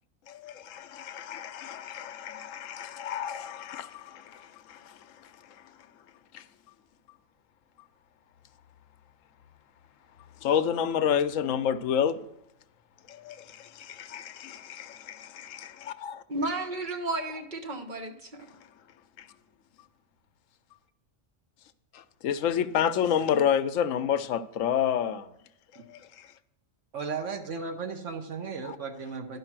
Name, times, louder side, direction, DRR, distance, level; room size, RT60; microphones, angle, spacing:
voice 1, 0.3-5.7 6.3-6.5 10.4-12.2 13.1-16.2 19.2-19.3 21.9-25.3 25.7-26.3 28.6-28.8, left 8 dB, 75° left, 0.9 m, -30 dB
voice 2, 16.3-18.4, right 2 dB, 40° right, 1.0 m, -33 dB
voice 3, 26.9-29.4, right 5 dB, 65° right, 1.3 m, -35 dB
11.0 x 5.6 x 6.0 m
omnidirectional pair, 1.4 m